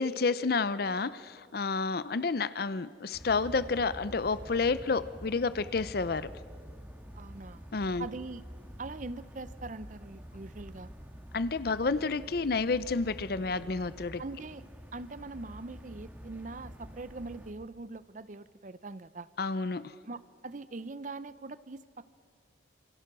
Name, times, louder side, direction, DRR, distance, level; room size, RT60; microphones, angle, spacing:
voice 1, 0.0-6.3 7.7-8.1 11.3-14.2 19.4-19.9, left 4 dB, 50° left, 16 dB, 0.6 m, -30 dB
sound 1, 3.1-17.5, equal, 10° right, 1.8 m, -47 dB
voice 2, 7.1-7.7 8.0-8.4 8.8-10.9 14.2-14.6 14.9-19.3 20.0-22.1, right 3 dB, 40° right, 16 dB, 0.6 m, -42 dB
28.0 x 26.5 x 6.1 m, 2.3 s
head